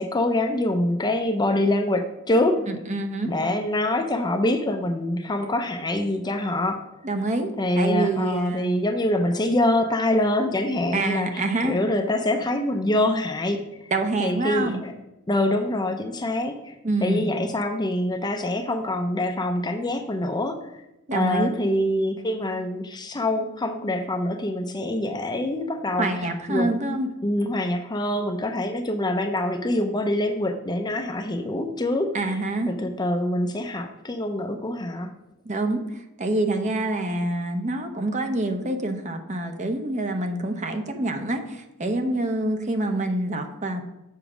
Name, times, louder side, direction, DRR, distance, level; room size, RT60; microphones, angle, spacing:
voice 1, 0.0-2.6 3.2-6.9 7.6-13.9 14.2-14.9 15.3-16.7 17.0-20.8 21.1-26.7 27.2-32.2 32.7-35.1 36.5-36.7, left 1 dB, 20° left, 6 dB, 0.6 m, -25 dB
voice 2, 2.7-3.3 7.0-8.8 10.9-11.8 13.9-14.8 16.8-17.3 21.1-21.5 26.0-27.1 32.1-32.7 35.4-43.8, right 2 dB, 35° right, 5 dB, 0.8 m, -26 dB
7.1 x 4.9 x 6.0 m, 0.91 s
head